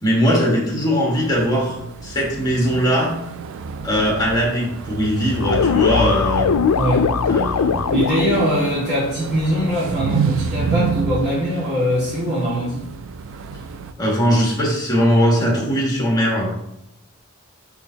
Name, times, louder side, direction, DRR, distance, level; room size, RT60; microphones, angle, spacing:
voice 1, 0.0-3.1 3.8-6.5 7.3-7.9 14.0-16.5, equal, 15° left, -2 dB, 1.6 m, -20 dB
sound 1, 1.1-13.9, right 5 dB, 60° right, 0.4 m, -29 dB
sound 2, 5.4-8.5, left 6 dB, 75° left, 0.4 m, -19 dB
voice 2, 6.7-7.1 7.9-12.9, equal, 30° right, -11 dB, 1.9 m, -22 dB
10.5 x 3.5 x 2.8 m, 0.86 s
head